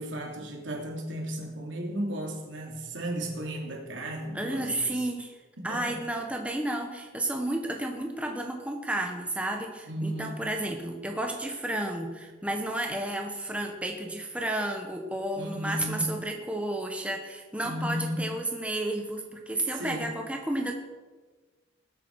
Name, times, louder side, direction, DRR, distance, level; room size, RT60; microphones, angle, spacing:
voice 1, 0.0-5.0 5.6-6.0 9.9-10.5 15.3-16.1 17.6-18.3 19.7-20.1, right 1 dB, 75° right, 0 dB, 3.0 m, -34 dB
voice 2, 4.3-5.3 5.6-20.8, right 1 dB, 5° right, 2 dB, 1.2 m, -32 dB
20.5 x 8.4 x 4.8 m, 1.3 s
head